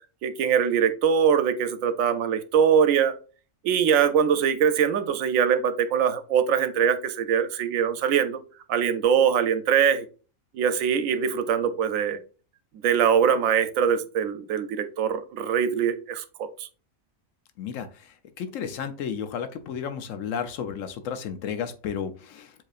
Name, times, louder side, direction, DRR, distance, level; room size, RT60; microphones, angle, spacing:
voice 1, 0.2-3.1 3.6-8.4 8.7-10.0 10.5-12.2 12.8-16.7, right 8 dB, 80° right, 10 dB, 1.0 m, -22 dB
voice 2, 17.6-22.5, left 7 dB, 75° left, 9 dB, 1.0 m, -33 dB
7.6 x 2.8 x 2.4 m, 0.37 s
omnidirectional pair, 1.4 m